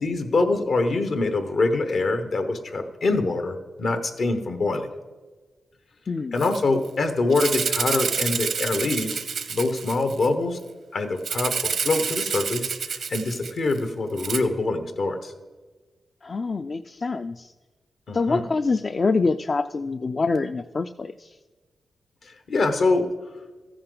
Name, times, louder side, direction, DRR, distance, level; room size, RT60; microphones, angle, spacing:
voice 1, 0.0-4.9 6.3-9.2 9.5-10.6 10.9-15.3 18.1-18.4 22.2-23.1, left 3 dB, 70° left, 8 dB, 1.1 m, -24 dB
Rattle (instrument), 6.4-6.6 6.8-6.9 7.3-10.3 11.2-13.8 14.2-14.4, right 6 dB, 80° right, 0.8 m, -28 dB
voice 2, 16.2-17.5 18.1-21.4, left 4 dB, 50° left, 10 dB, 0.4 m, -25 dB
14.5 x 10.0 x 3.9 m, 1.3 s
cardioid pair, 70°, 0 cm